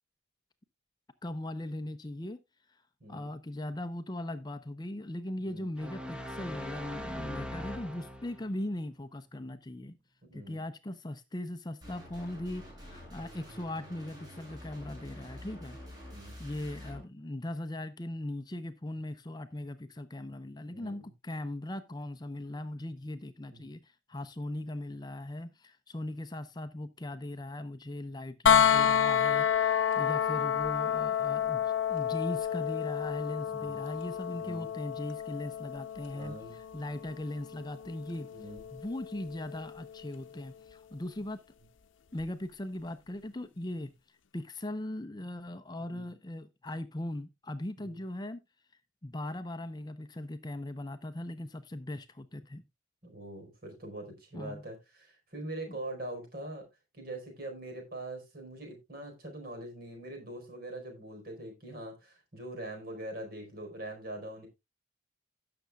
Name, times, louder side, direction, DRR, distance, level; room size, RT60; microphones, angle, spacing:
voice 1, 1.2-2.4 2.7-2.8 3.1-10.0 10.3-15.8 16.4-38.3 38.7-41.4 42.1-48.4 49.0-52.6 54.3-54.6 55.7-55.8, left 1 dB, 20° left, 0.5 m, -39 dB
sound 1, 5.8-8.5, equal, 5° right, 1.0 m, -40 dB
voice 2, 10.3-10.6 16.1-16.4 20.7-21.1 23.5-23.6 33.4-33.8 34.4-34.7 36.1-36.5 38.3-38.6 45.8-46.1 47.8-48.0 53.0-56.6 56.9-64.5, right 1 dB, 50° right, 4.4 m, -43 dB
sound 2, 11.8-17.0, left 1 dB, 20° right, 6.5 m, -47 dB
sound 3, 28.5-40.3 42.2-42.3, left 8 dB, 80° left, 0.7 m, -30 dB
16.5 x 6.8 x 2.3 m
head